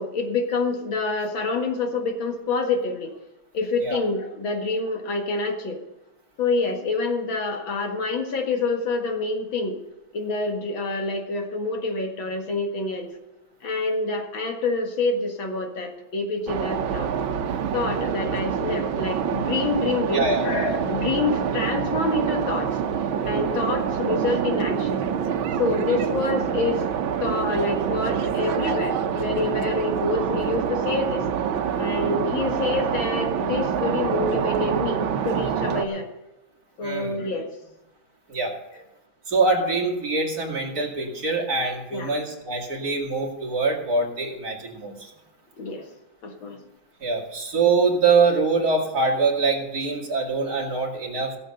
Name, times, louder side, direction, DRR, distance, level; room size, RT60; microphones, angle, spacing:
voice 1, 0.0-3.1 3.5-5.8 6.4-9.8 10.1-13.1 13.6-17.1 17.7-22.7 23.3-25.0 25.6-26.8 27.2-31.2 31.8-36.1 36.8-37.5 41.9-42.1 45.6-45.8 46.2-46.6, left 3 dB, 75° left, 3 dB, 2.5 m, -27 dB
sound 1, 16.5-35.8, right 7 dB, 85° right, 1.7 m, -26 dB
voice 2, 20.1-20.5 25.9-26.0 28.7-28.8 35.9-36.0 36.8-37.2 38.3-38.5 39.3-45.1 47.0-51.3, right 4 dB, 50° right, -1 dB, 2.9 m, -24 dB
16.5 x 7.3 x 6.6 m, 0.99 s
omnidirectional pair, 2.1 m